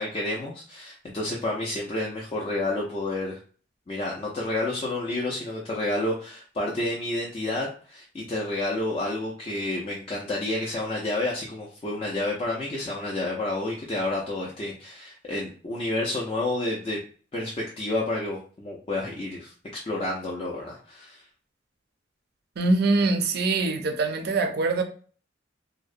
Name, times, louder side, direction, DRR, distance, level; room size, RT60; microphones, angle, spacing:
voice 1, 0.0-3.4 3.9-17.0 17.3-19.5 19.8-21.2, left 2 dB, 30° left, 0.4 m, -30 dB
voice 2, 22.6-24.8, right 3 dB, 55° right, 0.4 m, -23 dB
2.7 x 2.0 x 2.4 m
head